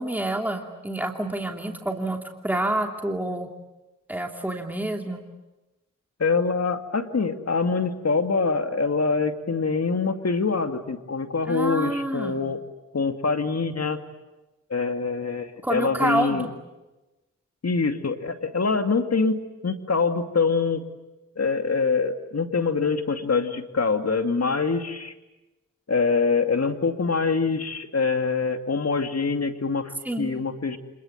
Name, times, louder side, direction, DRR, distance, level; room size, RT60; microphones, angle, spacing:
voice 1, 0.0-2.2 2.4-3.5 4.1-5.2 11.5-12.4 15.6-16.5 30.0-30.3, right 1 dB, 5° right, 3 dB, 2.8 m, -28 dB
voice 2, 6.2-12.6 12.9-14.0 14.7-16.5 17.6-20.8 21.4-25.1 25.9-30.8, left 4 dB, 50° left, 7 dB, 2.6 m, -24 dB
26.5 x 21.5 x 9.5 m, 1.1 s
cardioid pair, 40°, 32 cm